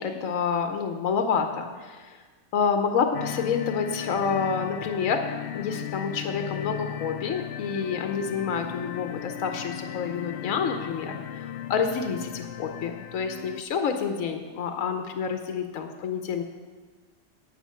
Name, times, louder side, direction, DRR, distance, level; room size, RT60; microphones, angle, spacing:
voice 1, 0.0-2.2 2.5-5.2 5.5-16.4, left 6 dB, 85° left, 6 dB, 1.2 m, -28 dB
sound 1, 3.1-13.6, left 10 dB, 60° left, 0.6 m, -36 dB
10.0 x 7.9 x 5.7 m, 1.4 s
omnidirectional pair, 1.4 m